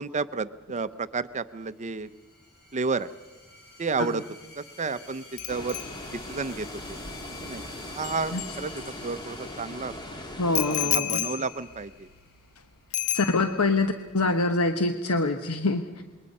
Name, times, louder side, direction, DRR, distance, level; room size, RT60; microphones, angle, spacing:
voice 1, 0.0-2.1 2.7-3.1 3.8-4.2 4.6-5.8 6.1-7.0 7.4-10.2 10.8-12.1, right 4 dB, 30° right, 13 dB, 0.6 m, -31 dB
sound 1, 1.7-12.9, left 3 dB, 50° left, 5.7 m, -49 dB
Bicycle bell, 5.4-9.2 10.5-12.6 12.9-13.8 14.1-14.4, left 14 dB, 70° left, 0.9 m, -33 dB
sound 2, 5.5-10.9, left 1 dB, 20° left, 1.9 m, -40 dB
voice 2, 10.4-11.3 13.1-16.0, left 2 dB, 90° left, 7 dB, 1.1 m, -25 dB
27.5 x 22.0 x 5.4 m, 1.3 s
head